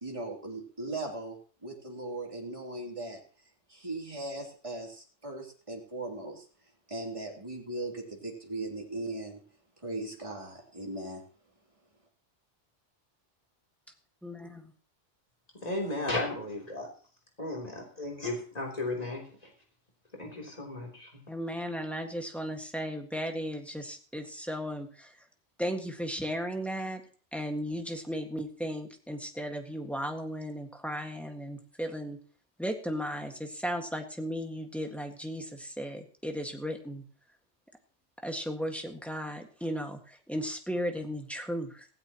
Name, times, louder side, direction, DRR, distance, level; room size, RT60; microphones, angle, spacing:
voice 1, 0.0-3.2 3.7-6.4 6.9-9.4 9.8-11.2, right 2 dB, 25° right, -1 dB, 3.2 m, -38 dB
voice 2, 14.2-14.7 21.3-25.1 25.6-27.0 27.3-32.2 32.6-37.0 38.2-41.9, equal, ahead, 3 dB, 1.7 m, -35 dB
voice 3, 15.6-16.9 17.4-19.2 20.1-21.1, left 2 dB, 30° left, 0 dB, 3.6 m, -34 dB
16.5 x 16.5 x 3.0 m, 0.43 s
omnidirectional pair, 1.2 m